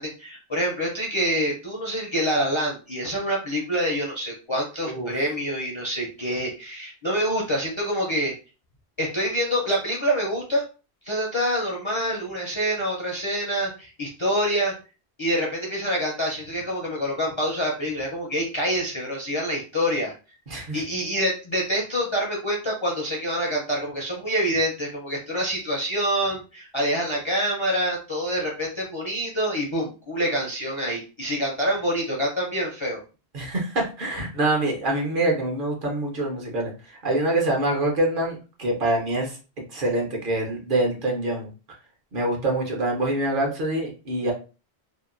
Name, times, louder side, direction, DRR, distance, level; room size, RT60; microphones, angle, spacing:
voice 1, 0.0-8.3 9.0-10.6 11.0-14.7 15.2-20.1 20.7-33.0, equal, 40° left, -3 dB, 0.5 m, -26 dB
voice 2, 20.5-20.8 33.3-41.5 42.1-44.3, right 1 dB, 55° right, 0 dB, 0.9 m, -25 dB
2.8 x 2.2 x 2.4 m, 0.33 s
omnidirectional pair, 1.1 m